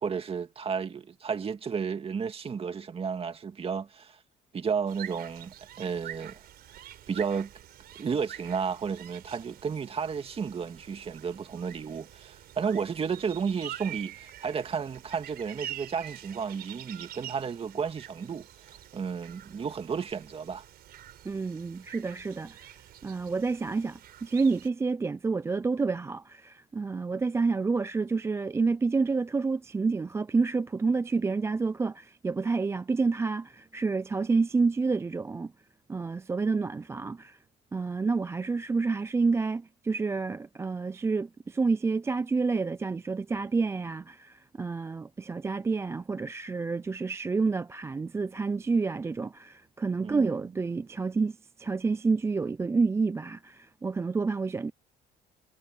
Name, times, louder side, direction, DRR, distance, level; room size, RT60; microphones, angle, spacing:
voice 1, 0.0-4.2 4.5-6.4 7.1-7.5 8.0-18.5 18.9-20.6 50.0-50.3, right 6 dB, 35° right, 2.2 m, -32 dB
sound 1, 4.9-24.7, right 12 dB, 65° right, 5.1 m, -46 dB
voice 2, 21.2-22.7 23.0-35.5 35.9-37.4 37.7-54.7, right 4 dB, 15° right, 0.3 m, -29 dB
cardioid pair, 110°, 17 cm